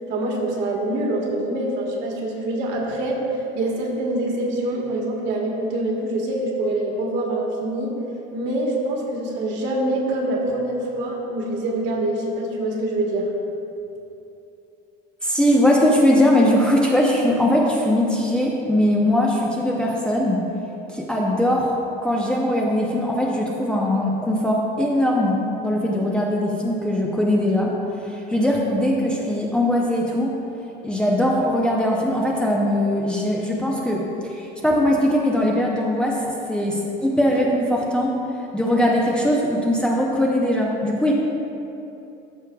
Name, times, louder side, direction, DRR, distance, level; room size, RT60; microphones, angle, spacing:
voice 1, 0.1-7.9 8.3-13.3, right 1 dB, 60° right, -1 dB, 1.6 m, -25 dB
voice 2, 15.2-20.4 20.9-21.7 22.0-27.7 28.1-30.4 30.8-38.2 38.5-41.1, left 1 dB, 5° left, -3 dB, 0.6 m, -20 dB
13.0 x 6.3 x 2.3 m, 2.9 s
cardioid pair, 145°, 21 cm